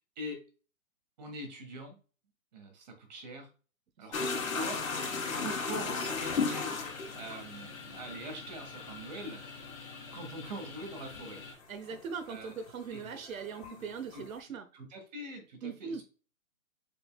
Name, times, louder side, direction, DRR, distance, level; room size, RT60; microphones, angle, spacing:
voice 1, 1.2-2.0 2.5-3.5 4.0-4.8 5.3-9.4 10.1-11.4 12.3-12.5 12.9-13.2 13.8-14.2 14.7-16.0, right 1 dB, 30° right, 1.5 m, -43 dB
sound 1, 4.1-12.7 12.9-14.3, left 4 dB, 85° left, 1.8 m, -36 dB
sound 2, 4.1-11.5, left 4 dB, 15° left, 0.9 m, -47 dB
sound 3, 11.1-11.5 13.6-14.0, left 7 dB, 45° left, 1.3 m, -55 dB
voice 2, 11.7-14.7 15.6-16.0, right 6 dB, 80° right, 0.9 m, -40 dB
6.7 x 3.5 x 2.2 m
hypercardioid pair, 165°, 40 cm